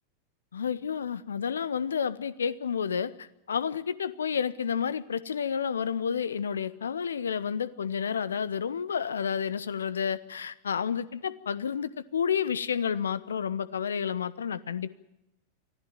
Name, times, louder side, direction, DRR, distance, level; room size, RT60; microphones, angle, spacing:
voice 1, 0.5-15.0, left 7 dB, 70° left, 19 dB, 0.9 m, -30 dB
24.5 x 15.0 x 9.0 m, 0.91 s
figure-of-eight pair, 90°, 0 cm